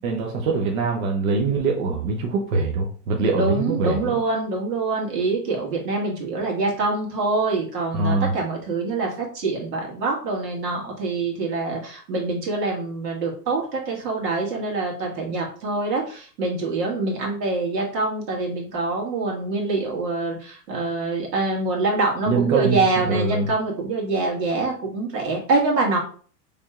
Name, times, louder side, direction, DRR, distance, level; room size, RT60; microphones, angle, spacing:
voice 1, 0.0-4.2 7.9-8.3 22.3-22.8 23.0-23.5, right 4 dB, 55° right, 1 dB, 0.8 m, -23 dB
voice 2, 3.3-26.0, right 3 dB, 90° right, -1 dB, 1.9 m, -25 dB
4.3 x 3.5 x 2.4 m, 0.43 s
supercardioid pair, 170°, 48 cm